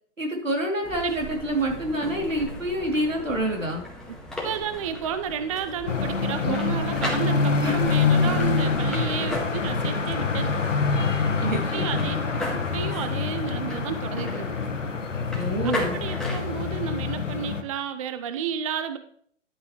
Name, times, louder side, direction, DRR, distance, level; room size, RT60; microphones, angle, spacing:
voice 1, 0.2-3.8 6.4-6.5 7.6-7.8 11.0-11.9 15.3-16.0, right 1 dB, 85° right, 0 dB, 3.0 m, -27 dB
sound 1, 0.8-16.7, left 1 dB, ahead, 1.7 m, -37 dB
voice 2, 4.4-10.6 11.7-12.2 12.5-14.5 15.6-19.0, right 8 dB, 30° right, 10 dB, 0.4 m, -32 dB
sound 2, 5.9-17.6, left 4 dB, 75° left, 1.4 m, -26 dB
11.0 x 8.6 x 3.1 m, 0.62 s
figure-of-eight pair, 125°, 38 cm